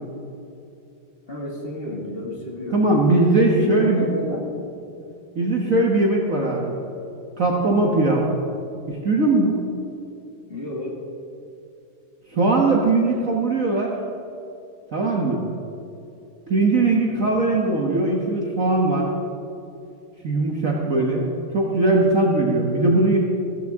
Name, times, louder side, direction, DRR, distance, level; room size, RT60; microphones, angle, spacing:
voice 1, 1.3-4.5 10.5-11.0 17.0-17.4, left 1 dB, 25° left, -4 dB, 2.2 m, -32 dB
voice 2, 2.7-4.1 5.3-6.8 7.4-8.3 8.9-9.6 12.3-13.9 14.9-15.4 16.5-19.1 20.2-21.3 21.5-23.2, right 2 dB, 45° right, -2 dB, 1.3 m, -20 dB
14.5 x 14.0 x 3.6 m, 2.7 s
omnidirectional pair, 2.3 m